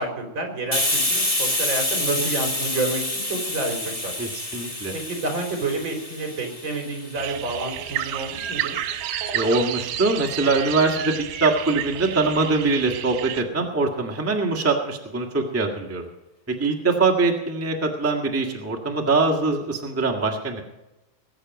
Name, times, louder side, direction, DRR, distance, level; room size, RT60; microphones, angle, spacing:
voice 1, 0.0-4.1 4.9-8.8, right 2 dB, 35° right, 3 dB, 4.0 m, -29 dB
Hiss, 0.7-8.1, left 1 dB, 80° left, 0.3 m, -28 dB
voice 2, 4.2-4.9 9.3-16.0 16.6-20.6, right 3 dB, 10° right, 1 dB, 0.7 m, -23 dB
sound 1, 7.2-13.4, right 11 dB, 80° right, 2.6 m, -30 dB
20.5 x 8.9 x 5.4 m, 0.97 s
omnidirectional pair, 3.7 m